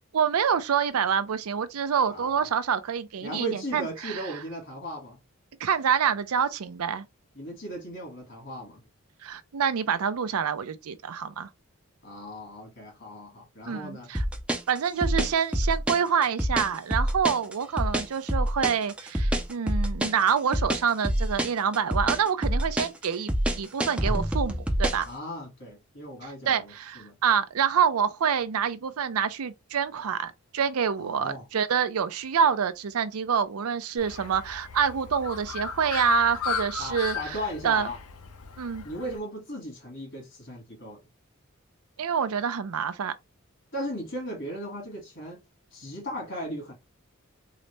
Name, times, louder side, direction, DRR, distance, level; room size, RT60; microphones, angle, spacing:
voice 1, 0.1-4.2 5.6-7.0 9.2-11.5 13.7-14.2 14.7-23.3 23.6-25.1 26.2-37.4 37.6-37.9 38.6-38.9 42.0-43.1, right 7 dB, 85° right, 0.5 m, -27 dB
voice 2, 2.1-2.5 3.2-5.2 7.3-8.8 12.0-14.2 25.0-27.2 31.0-31.5 36.8-38.0 38.8-41.0 43.7-45.4 45.7-46.7, equal, 55° left, 2.0 m, -37 dB
sound 1, 14.1-25.1, equal, 5° right, 0.4 m, -26 dB
Bird, 34.0-39.2, left 6 dB, 85° left, 0.7 m, -36 dB
3.9 x 2.1 x 3.2 m
head